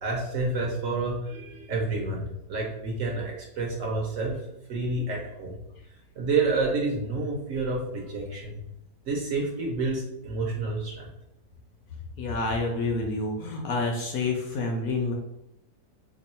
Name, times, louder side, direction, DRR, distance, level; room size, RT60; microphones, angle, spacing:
voice 1, 0.0-4.4 4.7-5.6 6.2-8.6 9.0-11.1, right 3 dB, 65° right, -1 dB, 0.9 m, -29 dB
voice 2, 12.2-15.1, left 3 dB, 70° left, 1 dB, 0.9 m, -28 dB
2.9 x 2.3 x 4.1 m, 0.85 s
omnidirectional pair, 1.8 m